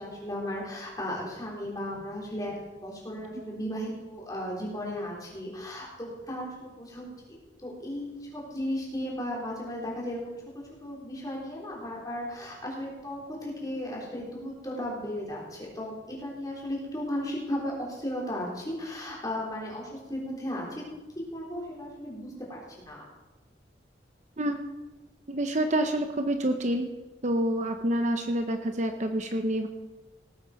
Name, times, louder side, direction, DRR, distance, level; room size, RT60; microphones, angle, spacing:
voice 1, 0.0-2.5 2.8-10.3 10.8-22.6 22.9-23.1, left 1 dB, 20° left, -3 dB, 4.1 m, -35 dB
voice 2, 25.3-26.9 27.2-29.7, right 1 dB, 40° right, 6 dB, 0.9 m, -27 dB
18.5 x 9.0 x 5.2 m, 1.1 s
head